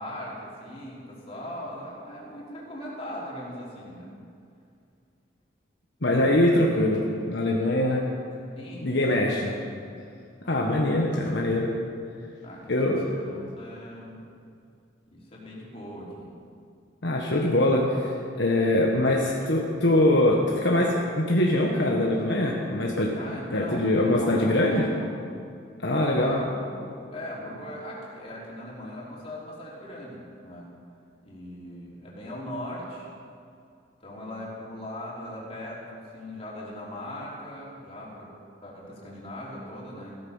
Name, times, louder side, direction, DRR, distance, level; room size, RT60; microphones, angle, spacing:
voice 1, 0.0-4.1 6.1-6.6 8.6-9.4 9.8-10.0 10.4-10.7 12.4-14.3 15.1-16.3 23.2-25.2 25.9-30.7 31.2-33.1 34.0-38.3 38.6-40.2, left 1 dB, 30° left, -5 dB, 3.6 m, -39 dB
voice 2, 6.0-8.0 8.8-9.5 10.5-11.7 12.7-13.0 17.0-18.1 18.4-23.1 23.5-24.8 25.8-26.4, left 1 dB, 65° left, -1 dB, 1.4 m, -23 dB
15.5 x 13.0 x 5.6 m, 2.4 s
head